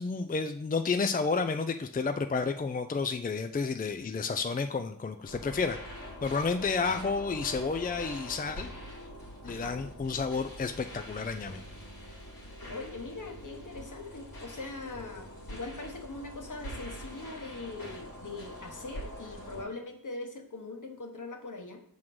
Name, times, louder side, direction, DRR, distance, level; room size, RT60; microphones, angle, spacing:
voice 1, 0.0-8.7 9.4-11.6, left 4 dB, 25° left, 8 dB, 0.4 m, -31 dB
sound 1, 5.3-19.6, equal, 85° left, 2.2 m, -44 dB
voice 2, 12.7-21.8, left 3 dB, 60° left, 3 dB, 1.2 m, -41 dB
6.3 x 3.7 x 6.1 m, 0.63 s
wide cardioid pair, 85°, 35 cm